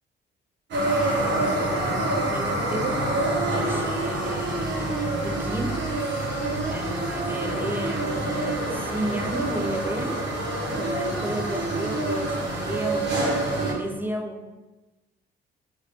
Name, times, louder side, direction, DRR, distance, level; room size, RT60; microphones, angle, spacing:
sound 1, 0.7-13.7, right 2 dB, 65° right, 0.9 m, -26 dB
voice 1, 1.8-5.9 6.7-10.3 10.7-13.2 13.5-14.5, right 1 dB, 10° right, 3 dB, 0.4 m, -33 dB
2.7 x 2.7 x 3.3 m, 1.1 s
cardioid pair, 90°, 20 cm